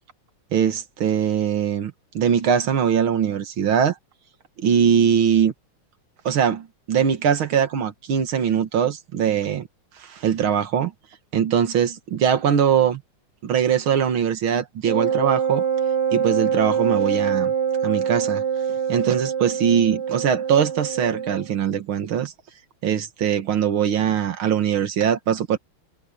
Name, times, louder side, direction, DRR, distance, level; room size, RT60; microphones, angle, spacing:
voice 1, 0.5-4.0 4.6-5.5 6.3-9.7 10.0-10.9 11.3-13.0 13.4-15.6 16.1-17.5 17.8-18.4 18.9-22.3 22.8-25.6, right 8 dB, 70° right, 2.3 m, -21 dB
Wind instrument woodwind instrument, 14.8-21.5, right 7 dB, 85° right, 3.3 m, -24 dB
omnidirectional pair, 2.4 m